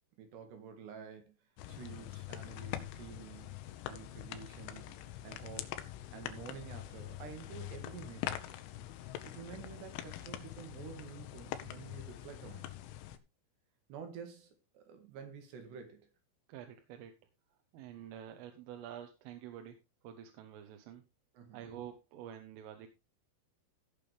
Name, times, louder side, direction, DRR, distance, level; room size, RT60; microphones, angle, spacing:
voice 1, 0.2-1.4 1.7-3.6 3.9-5.0 5.2-5.8 6.1-8.6 9.2-12.7 13.9-16.0 21.4-21.6, right 7 dB, 65° right, 3.8 m, -49 dB
sound 1, 1.6-13.2, left 13 dB, 80° left, 3.2 m, -44 dB
voice 2, 16.5-17.2 17.7-19.8 20.0-21.0 21.5-22.9, right 10 dB, 85° right, 3.7 m, -48 dB
16.5 x 6.9 x 3.4 m
omnidirectional pair, 5.7 m